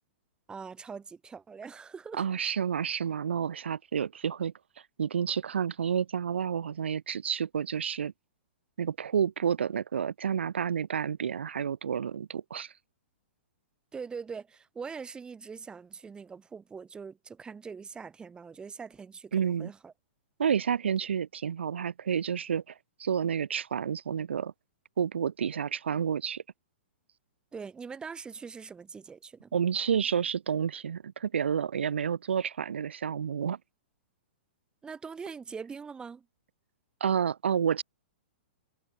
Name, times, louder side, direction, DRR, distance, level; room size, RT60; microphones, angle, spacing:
voice 1, 0.5-2.3 13.9-19.9 27.5-29.5 34.8-36.2, right 5 dB, 15° right, 4.8 m, -42 dB
voice 2, 2.1-4.5 5.0-8.1 8.8-12.7 19.3-19.7 20.4-22.6 23.0-24.5 25.0-26.4 29.5-33.6 37.0-37.8, right 7 dB, 80° right, 1.1 m, -30 dB
hypercardioid pair, 120°, 6 cm